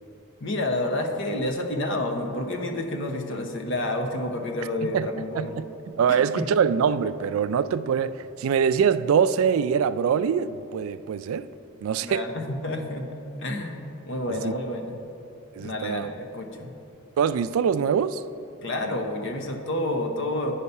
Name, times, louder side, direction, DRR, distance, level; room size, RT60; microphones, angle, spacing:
voice 1, 0.4-5.5 6.1-6.5 12.0-13.1 13.4-15.0 15.6-16.7 18.6-20.5, left 1 dB, 60° left, 4 dB, 0.8 m, -29 dB
voice 2, 5.3-11.5 11.8-12.2 14.3-14.5 15.6-16.1 17.2-18.2, right 7 dB, 75° right, 14 dB, 0.3 m, -24 dB
8.4 x 5.6 x 5.4 m, 2.8 s
head